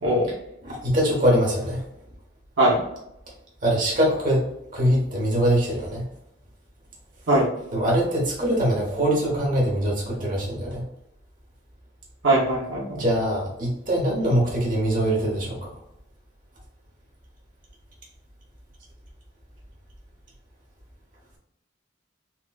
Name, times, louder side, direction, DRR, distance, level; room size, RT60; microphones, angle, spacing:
voice 1, 0.6-1.8 3.6-4.4 4.7-6.0 7.7-10.8 12.9-15.7, equal, 45° right, -4 dB, 1.1 m, -23 dB
voice 2, 12.2-13.0, right 1 dB, 80° right, -3 dB, 0.9 m, -20 dB
4.2 x 2.2 x 2.3 m, 0.81 s
head